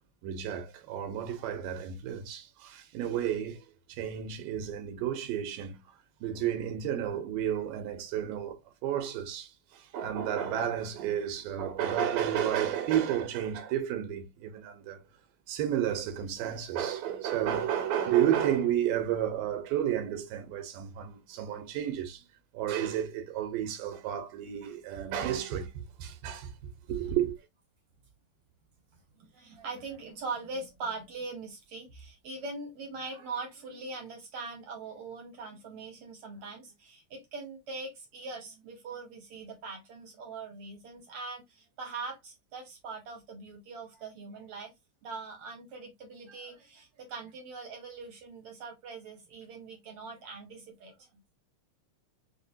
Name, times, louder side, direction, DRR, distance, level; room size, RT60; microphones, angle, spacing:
voice 1, 0.2-5.9 6.2-15.0 15.5-22.2 22.5-27.4, right 10 dB, 90° right, 2.5 m, -32 dB
voice 2, 29.2-44.7 45.0-51.1, right 3 dB, 70° right, 1.3 m, -42 dB
5.7 x 2.2 x 2.7 m
omnidirectional pair, 3.9 m